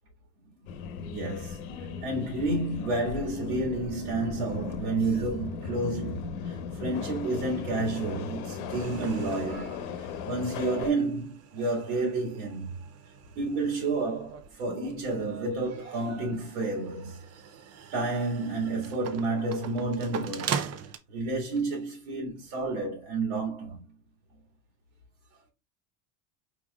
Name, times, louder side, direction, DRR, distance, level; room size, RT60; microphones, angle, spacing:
Subway metro underground, 0.7-10.9, left 6 dB, 75° left, 0.9 m, -37 dB
voice 1, 1.0-1.6 2.0-9.9 10.2-12.9 13.4-17.2 17.9-20.7 21.1-23.8, right 2 dB, 75° right, 2.0 m, -30 dB
sound 1, 8.7-10.3 10.8-21.0, right 7 dB, 35° right, 0.6 m, -41 dB
4.9 x 4.2 x 2.3 m
supercardioid pair, 120°, 43 cm